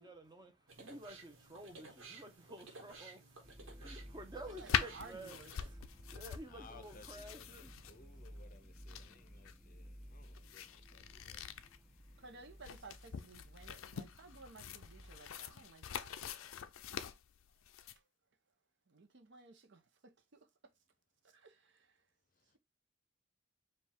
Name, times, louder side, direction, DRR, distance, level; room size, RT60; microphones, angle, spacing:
voice 1, 0.0-7.9 11.6-11.7, right 1 dB, 20° right, 0.8 m, -52 dB
sound 1, 0.7-5.7, right 3 dB, 80° right, 1.2 m, -56 dB
sound 2, 3.4-15.2, equal, 5° right, 0.3 m, -55 dB
voice 2, 4.5-5.6 12.2-16.2 18.9-20.5 21.2-22.0, right 3 dB, 60° right, 0.7 m, -56 dB
sound 3, 4.7-18.0, left 8 dB, 90° left, 0.4 m, -43 dB
voice 3, 6.3-11.4 16.1-16.6 22.3-22.6, left 3 dB, 40° left, 0.6 m, -61 dB
5.0 x 2.4 x 3.5 m
head